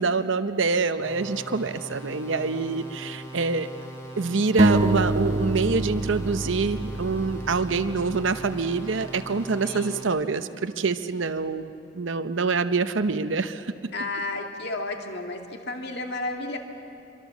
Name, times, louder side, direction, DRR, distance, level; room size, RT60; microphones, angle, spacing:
voice 1, 0.0-3.7 4.2-13.7, right 4 dB, 70° right, 10 dB, 0.8 m, -26 dB
sound 1, 1.0-10.0, right 1 dB, 15° left, 5.9 m, -41 dB
sound 2, 4.6-8.2, right 2 dB, 35° right, 0.8 m, -24 dB
voice 2, 9.6-10.0 13.9-15.4 15.7-16.6, left 2 dB, 55° left, 3 dB, 2.2 m, -32 dB
26.0 x 23.5 x 7.2 m, 2.6 s
head